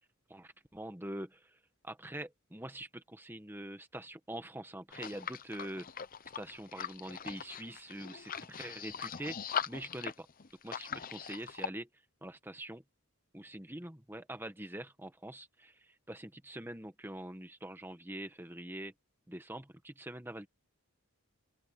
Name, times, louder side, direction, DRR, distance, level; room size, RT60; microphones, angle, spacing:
voice 1, 0.3-1.6 1.8-5.9 6.3-10.1 10.6-11.9 12.2-12.8 13.3-18.9 19.3-20.5, right 1 dB, 10° right, 1.4 m, -44 dB
sound 1, 4.9-11.7, left 7 dB, 40° left, 0.8 m, -41 dB
open air
head